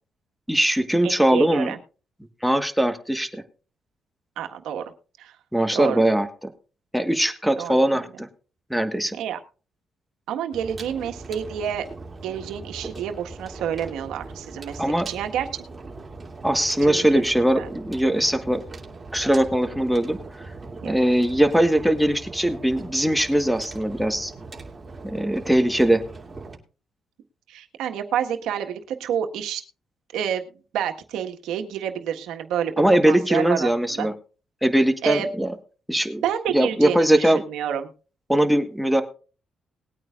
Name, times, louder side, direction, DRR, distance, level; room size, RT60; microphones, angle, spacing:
voice 1, 0.5-1.7 2.4-3.4 5.5-6.3 6.9-8.3 8.7-9.2 14.8-15.1 16.4-18.6 19.1-20.2 20.8-24.3 25.0-26.0 32.8-34.1 34.6-35.5 35.9-36.2 36.5-37.4 38.3-39.0, right 1 dB, ahead, 7 dB, 1.4 m, -21 dB
voice 2, 1.0-1.8 4.4-4.8 5.2-5.3 5.7-6.0 7.6-8.0 9.1-9.4 10.3-11.9 12.2-15.5 16.8-17.2 17.5-17.8 20.8-20.9 27.5-29.6 30.1-30.4 30.7-32.7 33.0-34.1 35.0-35.3 36.2-37.9, right 9 dB, 85° right, 5 dB, 1.5 m, -29 dB
sound 1, 10.5-26.6, right 3 dB, 25° right, 2.7 m, -40 dB
20.0 x 9.0 x 2.5 m, 0.35 s
cardioid pair, 90°, 0 cm